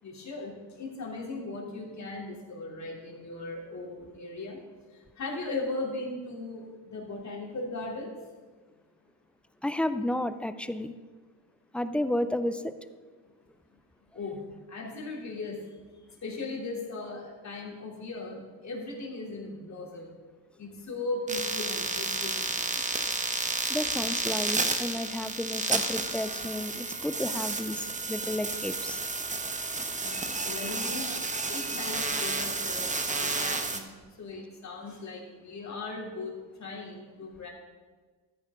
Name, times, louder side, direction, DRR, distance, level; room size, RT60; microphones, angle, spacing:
voice 1, 0.0-4.6 4.9-8.1 13.7-15.6 16.1-20.1 20.6-22.8 30.0-31.1 31.5-37.5, left 2 dB, 35° left, -1 dB, 3.3 m, -38 dB
voice 2, 9.6-10.9 11.7-12.7 23.7-29.0 30.1-30.8 31.6-31.8, left 1 dB, 5° left, 11 dB, 0.3 m, -32 dB
sound 1, 21.3-33.8, right 3 dB, 15° right, 1.1 m, -31 dB
13.5 x 9.6 x 3.8 m, 1.4 s
cardioid pair, 95°, 47 cm